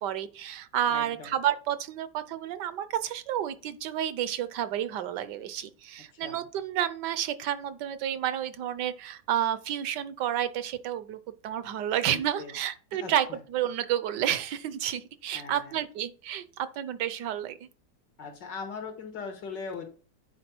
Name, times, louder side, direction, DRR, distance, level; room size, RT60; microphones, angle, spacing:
voice 1, 0.0-11.2 11.4-17.6, right 11 dB, 80° right, 1.4 m, -30 dB
voice 2, 0.9-1.3 6.1-6.5 12.1-12.5 12.9-13.4 15.3-15.8 18.2-19.9, left 5 dB, 90° left, 2.3 m, -40 dB
9.6 x 4.7 x 4.4 m
omnidirectional pair, 1.8 m